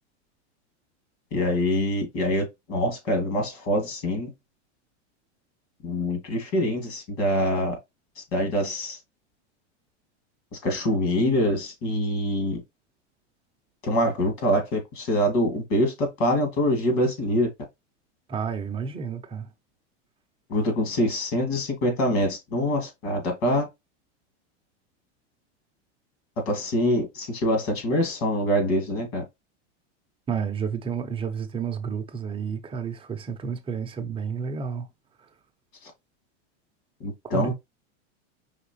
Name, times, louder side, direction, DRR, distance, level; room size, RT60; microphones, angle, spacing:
voice 1, 1.3-4.3 5.8-7.8 8.2-9.0 10.5-12.6 13.8-17.5 20.5-23.7 26.5-29.2 35.8-35.9 37.0-37.5, left 1 dB, 55° left, 2.2 m, -25 dB
voice 2, 18.3-19.5 30.3-34.9 37.3-37.5, right 6 dB, 15° right, 0.6 m, -31 dB
5.0 x 3.1 x 3.1 m
supercardioid pair, 140°, 37 cm